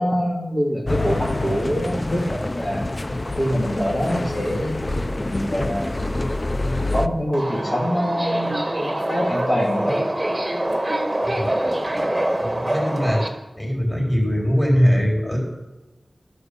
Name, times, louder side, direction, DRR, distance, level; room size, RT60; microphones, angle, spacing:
voice 1, 0.0-2.8 3.4-6.2 6.9-10.0, equal, 55° left, -4 dB, 2.3 m, -25 dB
sound 1, 0.9-7.1, left 2 dB, 35° left, 0.5 m, -26 dB
Subway metro underground, 7.3-13.3, right 1 dB, 25° right, 1.5 m, -24 dB
voice 2, 11.2-11.6 12.4-13.2 13.6-15.4, equal, 5° left, -2 dB, 3.8 m, -21 dB
12.5 x 4.9 x 6.6 m, 1.1 s
wide cardioid pair, 50°, 0 cm